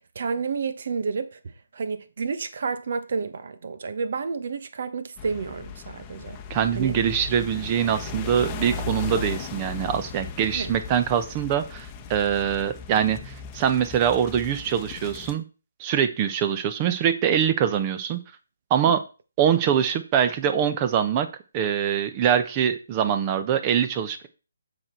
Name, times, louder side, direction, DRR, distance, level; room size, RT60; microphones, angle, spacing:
voice 1, 0.0-6.4 6.8-7.0 10.5-10.7 18.8-18.9, right 5 dB, 55° right, 1.2 m, -30 dB
sound 1, 5.2-15.3, left 5 dB, 20° left, 1.0 m, -37 dB
voice 2, 6.5-15.4 15.8-18.2 18.7-19.0 19.4-21.3 21.5-24.3, right 8 dB, 25° right, 0.9 m, -23 dB
7.7 x 6.1 x 4.5 m
figure-of-eight pair, 150°, 0 cm